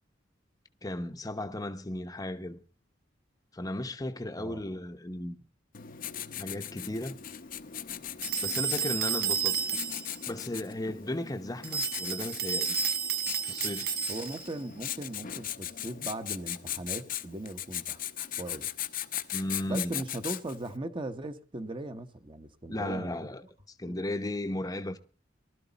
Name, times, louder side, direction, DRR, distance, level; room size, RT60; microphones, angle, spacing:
voice 1, 0.8-2.6 3.5-5.4 6.4-7.2 8.4-9.6 10.3-12.8 13.4-14.0 19.3-20.0 22.7-23.4 23.8-25.0, left 1 dB, 20° left, 0.8 m, -35 dB
Writing, 5.7-20.7, left 11 dB, 50° left, 0.8 m, -39 dB
sound 1, 8.2-10.2 11.6-14.5, right 7 dB, 55° right, 0.9 m, -31 dB
voice 2, 14.1-18.0 18.4-18.7 19.7-23.3 23.8-24.0, right 1 dB, 25° right, 1.0 m, -38 dB
19.5 x 12.5 x 4.0 m
head